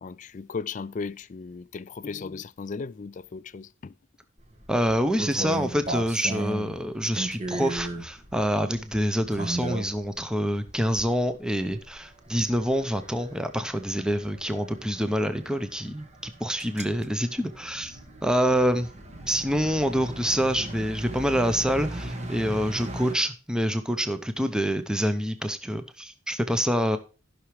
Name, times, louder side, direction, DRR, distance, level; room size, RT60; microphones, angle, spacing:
voice 1, 0.0-3.9, left 4 dB, 40° left, 0.4 m, -36 dB
sound 1, 4.4-10.2 10.7-11.2 11.6-23.2, right 1 dB, 35° right, 1.3 m, -37 dB
voice 2, 4.7-18.9 19.3-27.0, equal, 5° right, 0.7 m, -26 dB
15.0 x 5.9 x 3.1 m
head